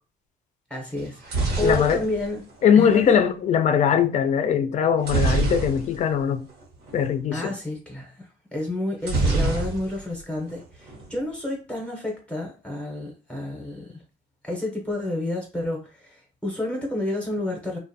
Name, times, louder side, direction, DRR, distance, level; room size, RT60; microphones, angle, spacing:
voice 1, 0.7-2.4 2.8-3.1 7.3-13.9 14.4-17.8, left 2 dB, 5° left, 0.7 m, -30 dB
sound 1, 1.0-3.1 5.0-6.2 6.5-6.6 6.9-7.1 9.0-10.2 10.5-11.1, right 2 dB, 80° right, 0.9 m, -25 dB
voice 2, 1.6-2.1 2.6-6.5 6.9-7.5, left 8 dB, 45° left, 0.4 m, -21 dB
2.4 x 2.1 x 2.6 m
cardioid pair, 110°, 17 cm